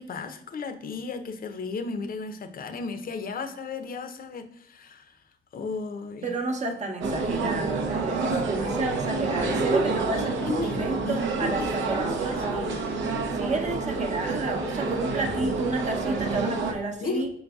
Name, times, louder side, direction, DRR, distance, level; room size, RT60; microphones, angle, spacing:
voice 1, 0.0-5.2 5.5-6.3 10.4-10.8 11.0-13.0 17.0-17.3, left 4 dB, 45° left, 8 dB, 0.6 m, -34 dB
voice 2, 6.2-12.7 13.3-17.3, right 3 dB, 35° right, 3 dB, 0.8 m, -31 dB
sound 1, 7.0-16.7, right 3 dB, 75° right, 0.7 m, -28 dB
5.0 x 3.9 x 2.3 m, 0.74 s
cardioid pair, 90°, 20 cm